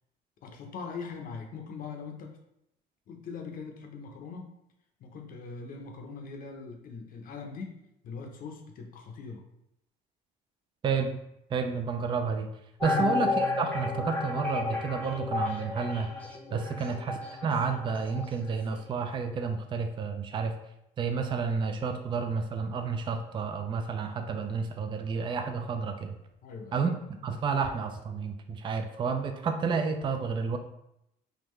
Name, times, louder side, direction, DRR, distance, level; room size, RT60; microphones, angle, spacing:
voice 1, 0.4-2.4 3.1-4.5 5.0-9.4 12.9-13.0 26.4-26.8, left 5 dB, 55° left, 3 dB, 0.6 m, -41 dB
voice 2, 10.8-11.2 11.5-12.5 12.8-16.1 16.5-20.5 21.0-26.2 26.7-26.9 27.2-30.6, right 5 dB, 30° right, 6 dB, 0.4 m, -30 dB
sound 1, 12.8-18.4 18.7-18.8, left 3 dB, 10° left, 0.7 m, -32 dB
3.6 x 2.2 x 3.1 m, 0.81 s
cardioid pair, 110°, 17 cm